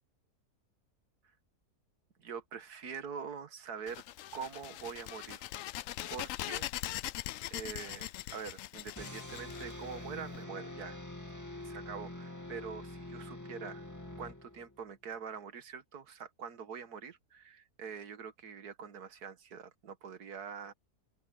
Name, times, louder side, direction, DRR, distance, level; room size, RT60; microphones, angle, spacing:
voice 1, 2.2-4.0 4.3-5.5 6.1-6.7 7.5-11.0 11.6-13.9 14.2-20.7, right 6 dB, 80° right, 1.9 m, -44 dB
sound 1, 3.9-10.4, left 14 dB, 70° left, 0.8 m, -41 dB
sound 2, 9.0-14.8, left 1 dB, 10° left, 2.4 m, -45 dB
open air
omnidirectional pair, 1.7 m